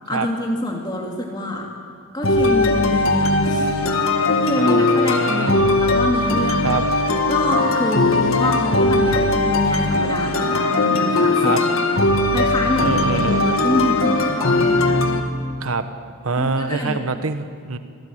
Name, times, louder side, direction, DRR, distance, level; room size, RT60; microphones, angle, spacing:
voice 1, 0.1-1.7 2.1-3.7 4.1-6.8 7.3-11.8 12.3-15.0 16.4-17.0, left 1 dB, 20° left, -1 dB, 2.3 m, -25 dB
sound 1, 2.2-15.2, left 2 dB, 70° left, 1.9 m, -19 dB
voice 2, 4.6-5.5 6.6-6.8 11.4-11.6 12.8-13.4 15.6-15.9 16.2-17.8, right 4 dB, 80° right, 9 dB, 1.1 m, -24 dB
25.5 x 18.5 x 8.8 m, 2.2 s
head